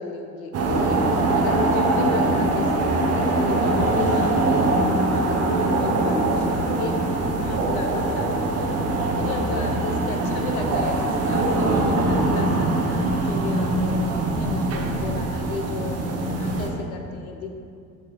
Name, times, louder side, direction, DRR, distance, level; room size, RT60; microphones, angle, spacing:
voice 1, 0.0-8.8 9.1-16.0 16.4-17.5, left 3 dB, 75° left, 3 dB, 0.7 m, -34 dB
sound 1, 0.5-16.7, right 2 dB, 35° right, 0.8 m, -22 dB
6.7 x 3.2 x 5.1 m, 2.3 s
figure-of-eight pair, 60°, 44 cm